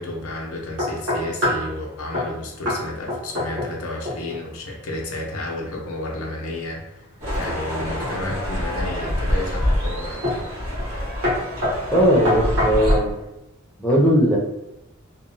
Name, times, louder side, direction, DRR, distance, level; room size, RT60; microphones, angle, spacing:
voice 1, 0.0-7.0 7.4-10.4, left 2 dB, 90° left, 0 dB, 0.5 m, -31 dB
sound 1, 0.8-1.7 2.1-2.3 2.7-2.8 3.1-3.8 4.1-4.4 7.8-8.4 9.0-9.4 10.2-10.5 10.8-11.0 11.2-13.1, left 1 dB, 65° right, 1.0 m, -25 dB
sound 2, 7.2-13.0, equal, 90° right, 1.4 m, -26 dB
voice 2, 11.9-13.1 13.8-14.4, equal, 5° left, -4 dB, 0.4 m, -18 dB
2.9 x 2.0 x 2.5 m, 0.89 s
head